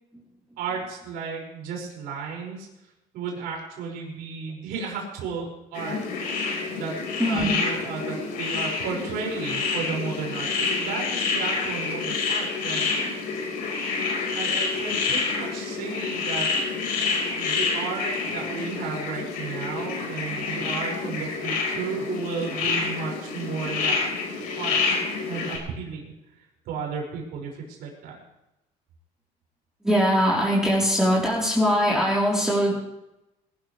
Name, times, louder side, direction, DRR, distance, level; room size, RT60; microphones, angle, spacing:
voice 1, 0.6-2.7 3.1-6.0 6.7-7.0 7.3-12.9 14.3-16.5 17.3-24.1 24.6-24.8 25.3-26.1 26.7-28.2, right 5 dB, 90° right, -1 dB, 5.6 m, -33 dB
sound 1, 5.7-25.6, left 4 dB, 85° left, 4.6 m, -28 dB
voice 2, 7.2-7.6 14.8-14.9 17.3-17.4 29.8-32.8, equal, 5° right, -6 dB, 3.7 m, -22 dB
21.5 x 14.5 x 3.3 m, 0.92 s
cardioid pair, 120°, 15 cm